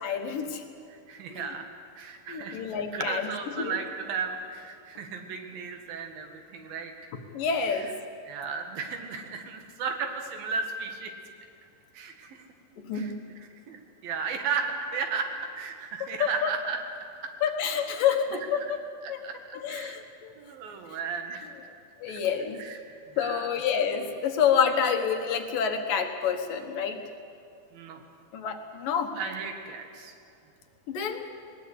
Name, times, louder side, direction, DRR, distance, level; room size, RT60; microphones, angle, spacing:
voice 1, 0.0-0.6 1.3-1.5 2.3-3.3 3.6-3.7 7.3-7.9 12.8-13.2 16.2-16.5 17.4-18.8 19.1-19.2 19.5-20.3 22.0-22.6 23.2-27.0 28.3-29.2 30.9-31.2, left 7 dB, 70° left, 5 dB, 3.0 m, -28 dB
voice 2, 0.9-1.7 2.0-6.9 7.7-7.9 8.3-11.1 11.9-12.4 12.9-13.1 13.7-16.8 17.2-17.3 19.0-19.4 19.7-20.0 20.4-21.5 22.1-22.2 22.6-22.8 23.1-23.6 27.7-28.0 29.2-30.1, right 5 dB, 80° right, 4 dB, 3.7 m, -35 dB
20.0 x 20.0 x 8.3 m, 2.5 s
omnidirectional pair, 4.1 m